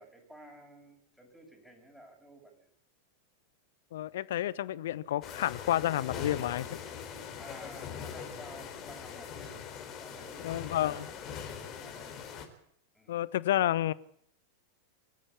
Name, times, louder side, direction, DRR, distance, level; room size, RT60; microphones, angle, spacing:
voice 1, 0.0-2.7 7.4-9.6 10.0-11.1 11.8-12.2 12.9-13.3, right 1 dB, ahead, 7.4 m, -53 dB
voice 2, 3.9-6.8 10.4-11.1 13.1-13.9, left 13 dB, 55° left, 0.9 m, -30 dB
sound 1, 5.2-12.5, left 7 dB, 35° left, 4.0 m, -42 dB
24.5 x 14.0 x 8.6 m
figure-of-eight pair, 90°, 0 cm